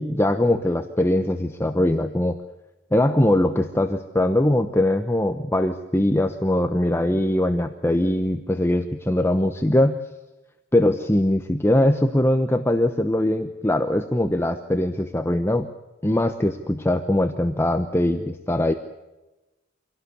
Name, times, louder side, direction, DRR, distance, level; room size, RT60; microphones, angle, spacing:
voice 1, 0.0-2.4 2.9-10.0 10.7-15.7 16.0-18.7, left 1 dB, 15° left, 7 dB, 0.9 m, -21 dB
25.5 x 17.5 x 8.3 m, 1.1 s
head